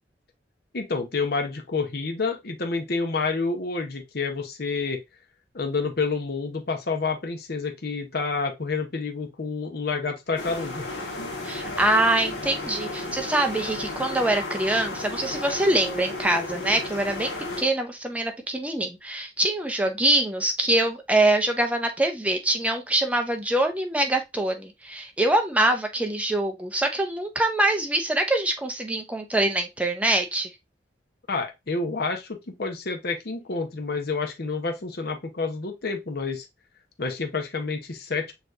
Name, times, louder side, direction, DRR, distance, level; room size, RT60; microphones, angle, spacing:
voice 1, 0.7-5.0 5.5-10.8 31.3-36.5 37.0-38.3, left 4 dB, 55° left, 0.9 m, -29 dB
sound 1, 10.4-17.6, left 2 dB, 90° left, 1.6 m, -33 dB
voice 2, 11.4-30.5, right 1 dB, 10° right, 0.6 m, -24 dB
6.5 x 3.0 x 2.6 m
head